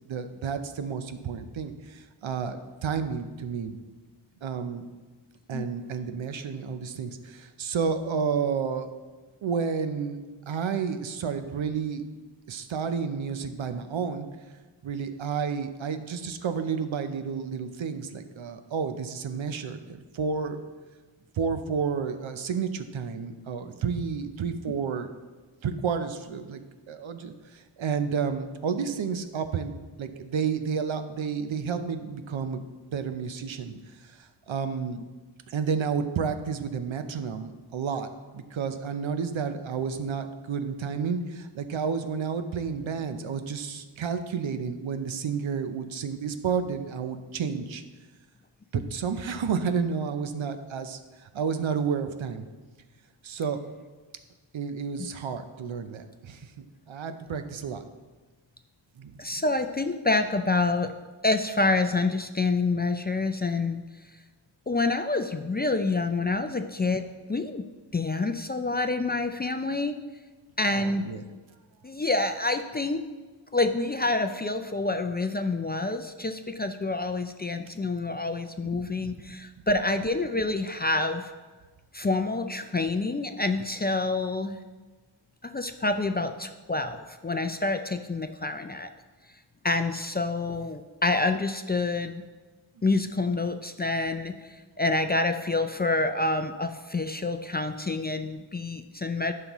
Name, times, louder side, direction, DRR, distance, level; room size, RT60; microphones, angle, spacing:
voice 1, 0.0-3.8 4.4-4.8 5.5-8.9 9.4-10.2 10.5-12.0 12.5-14.3 14.8-20.6 21.4-25.1 25.6-29.7 30.0-32.6 32.9-33.8 34.5-35.0 35.5-38.1 38.3-47.8 48.7-51.0 51.3-52.4 53.2-53.6 54.5-57.8 59.0-59.1 70.7-71.2, right 6 dB, 75° right, 9 dB, 0.7 m, -31 dB
voice 2, 59.2-60.9 61.2-63.8 64.7-67.7 67.9-70.0 70.6-71.1 71.8-73.0 73.5-81.3 81.9-84.6 85.4-88.9 89.6-92.2 92.8-99.3, left 3 dB, 25° left, 7 dB, 0.3 m, -27 dB
11.0 x 5.7 x 3.0 m, 1.3 s
wide cardioid pair, 70°, 47 cm